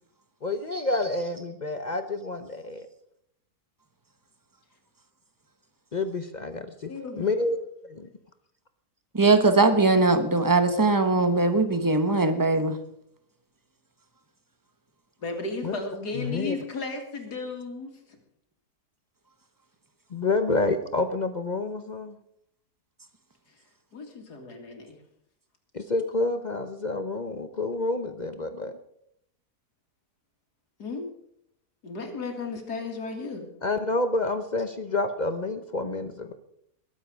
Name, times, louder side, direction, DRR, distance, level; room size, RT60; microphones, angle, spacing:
voice 1, 0.4-2.9 5.9-6.9 7.2-7.6 7.9-8.1 15.6-15.7 16.1-16.6 20.1-22.2 25.7-28.8 33.6-36.3, left 2 dB, 45° left, 0.6 m, -28 dB
voice 2, 6.8-7.3 15.2-18.2 23.9-25.0 30.8-31.1 31.8-33.5, left 3 dB, 80° left, 2.7 m, -35 dB
voice 3, 9.1-12.8, right 3 dB, 15° right, 0.8 m, -21 dB
21.5 x 7.9 x 5.1 m
omnidirectional pair, 1.7 m